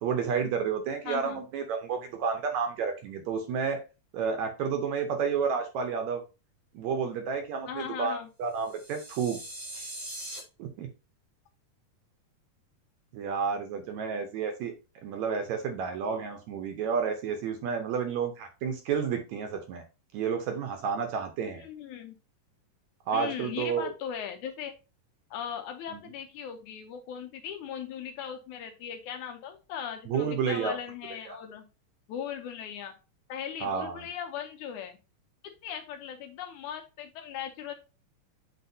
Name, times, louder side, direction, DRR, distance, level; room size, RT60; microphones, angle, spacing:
voice 1, 0.0-3.8 4.1-6.2 6.7-9.4 9.7-9.9 10.6-10.9 13.1-14.7 15.0-19.8 20.1-21.7 23.1-23.9 25.9-26.0 30.1-30.7 31.3-31.4 33.6-34.0, right 6 dB, 70° right, 6 dB, 1.9 m, -31 dB
voice 2, 1.0-1.4 7.7-8.3 21.4-22.2 23.1-24.7 25.3-31.7 32.1-32.9 33.3-35.0 35.6-37.7, left 8 dB, 75° left, 6 dB, 2.0 m, -38 dB
sound 1, 8.6-10.4, right 1 dB, 15° right, 1.3 m, -41 dB
8.3 x 4.4 x 2.7 m, 0.30 s
omnidirectional pair, 3.8 m